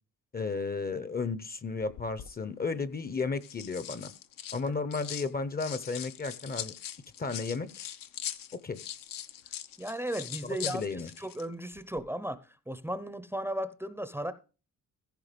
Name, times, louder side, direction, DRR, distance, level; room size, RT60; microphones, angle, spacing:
voice 1, 0.3-4.1 4.5-6.7 7.2-7.9 8.6-8.8 10.4-11.1, left 4 dB, 30° left, 0.7 m, -33 dB
sound 1, 1.9-2.3 3.2-5.3 5.6-11.5 11.7-12.0, left 10 dB, 75° left, 0.9 m, -41 dB
voice 2, 9.8-14.3, right 1 dB, 5° right, 0.6 m, -36 dB
15.0 x 5.5 x 5.1 m
cardioid pair, 145°, 33 cm